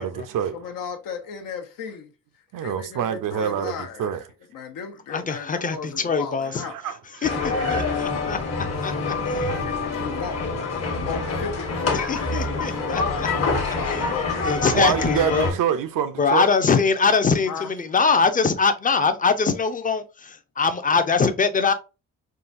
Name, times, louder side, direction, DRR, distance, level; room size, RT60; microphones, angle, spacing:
voice 1, 0.0-0.6 2.5-4.2 6.6-7.9 14.7-16.5, right 9 dB, 75° right, 0.6 m, -26 dB
voice 2, 0.5-2.1 2.6-4.1 4.5-6.8 7.3-8.2 8.8-10.4 10.8-14.6 17.5-17.7, left 6 dB, 85° left, 0.8 m, -36 dB
voice 3, 5.1-6.6 7.2-8.4 8.8-9.5 11.9-13.3 14.4-15.5 16.2-21.7, left 5 dB, 25° left, 0.5 m, -22 dB
sound 1, 7.2-15.5, left 3 dB, 50° left, 1.1 m, -26 dB
3.7 x 2.2 x 2.5 m
cardioid pair, 95°, 33 cm